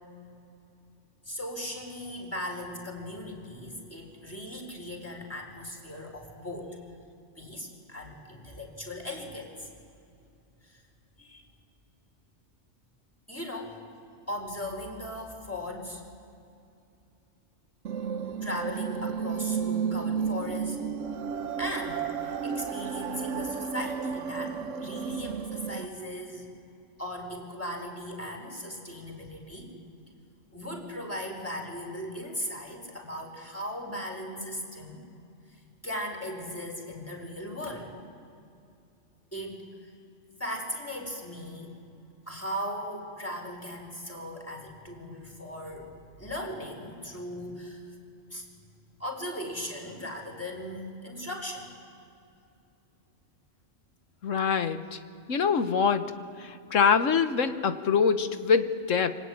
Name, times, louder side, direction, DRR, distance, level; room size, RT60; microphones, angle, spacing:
voice 1, 1.2-6.8 7.4-9.7 10.6-10.8 11.2-11.4 13.3-13.8 14.3-16.0 18.4-20.8 21.6-26.5 27.0-29.7 30.5-35.0 35.8-37.9 39.3-39.9 40.4-41.8 42.3-45.9 46.2-47.9 48.3-48.4 49.0-51.7, equal, 10° left, 1 dB, 4.9 m, -38 dB
sound 1, 17.8-25.8, right 6 dB, 80° right, 1.3 m, -32 dB
voice 2, 54.2-55.0 55.3-56.1 56.4-59.2, left 6 dB, 85° left, 10 dB, 1.5 m, -24 dB
25.0 x 24.5 x 9.7 m, 2.6 s
omnidirectional pair, 1.3 m